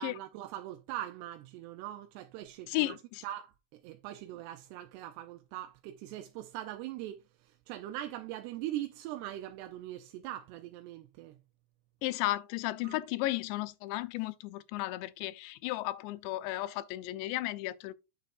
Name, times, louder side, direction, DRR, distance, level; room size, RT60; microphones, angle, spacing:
voice 1, 0.0-3.0 3.2-11.4 12.8-13.0, right 13 dB, 80° right, 2.6 m, -41 dB
voice 2, 2.7-3.2 12.0-17.9, left 17 dB, 85° left, 2.8 m, -34 dB
9.2 x 6.8 x 2.5 m
omnidirectional pair, 5.0 m